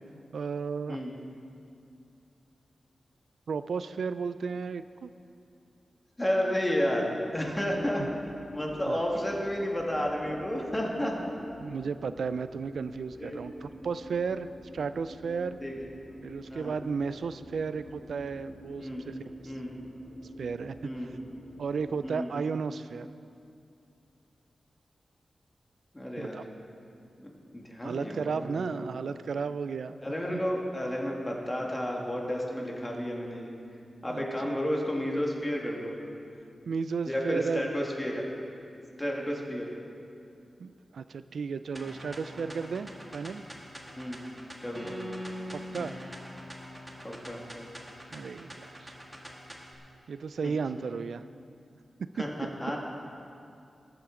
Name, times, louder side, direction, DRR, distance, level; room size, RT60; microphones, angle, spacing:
voice 1, 0.3-1.0 3.5-5.1 8.0-8.1 8.8-9.0 11.6-14.5 14.7-15.6 16.2-19.5 20.4-21.1 21.6-23.1 26.2-26.4 27.8-30.0 30.3-30.4 34.1-34.6 36.7-37.7 40.6-43.4 45.5-45.9 48.1-48.9 50.1-51.2, right 5 dB, 85° right, 12 dB, 0.3 m, -34 dB
voice 2, 6.2-8.0 8.5-11.3 13.2-13.4 15.6-15.7 16.5-16.7 18.8-19.0 19.4-19.7 20.8-21.1 22.0-22.3 25.9-26.4 27.2-28.8 30.0-33.5 34.0-36.0 37.1-38.2 39.0-39.7 44.0-44.2 44.6-44.9 47.0-47.4 50.4-50.5 52.2-52.8, equal, 15° left, -1 dB, 1.7 m, -31 dB
sound 1, 7.3-21.8, equal, 70° left, 3.2 m, -48 dB
sound 2, 41.7-49.7, equal, 10° right, 1.4 m, -43 dB
20.0 x 9.0 x 3.8 m, 2.6 s
wide cardioid pair, 150°, 0 cm